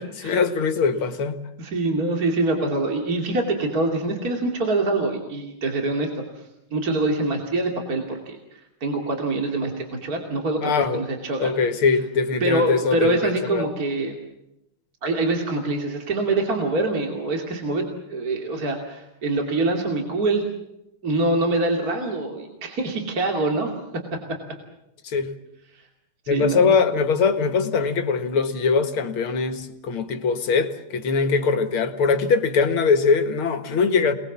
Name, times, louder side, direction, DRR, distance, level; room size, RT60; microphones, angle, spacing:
voice 1, 0.2-1.4 10.6-11.0 11.4-13.7 25.0-25.3 26.3-34.1, left 5 dB, 75° left, 2.6 m, -22 dB
voice 2, 1.6-6.1 6.3-6.4 6.7-11.5 12.4-14.2 15.0-17.8 18.1-20.4 21.0-23.7 24.1-24.4 25.7-25.8 26.3-26.7, right 2 dB, 40° right, 3.2 m, -25 dB
29.0 x 20.5 x 7.4 m
omnidirectional pair, 2.4 m